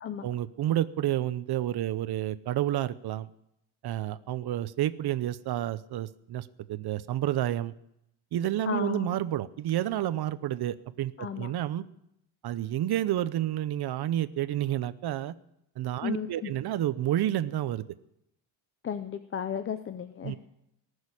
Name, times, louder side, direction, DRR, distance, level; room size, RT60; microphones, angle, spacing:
voice 1, 0.2-3.3 3.8-7.7 8.3-11.8 12.4-15.3 15.8-17.8 20.2-20.4, right 12 dB, 55° right, 15 dB, 0.7 m, -30 dB
voice 2, 8.7-9.2 11.2-11.5 16.0-16.5 18.8-20.4, left 8 dB, 30° left, 10 dB, 0.5 m, -34 dB
19.0 x 6.5 x 9.8 m, 0.81 s
cardioid pair, 155°, 45 cm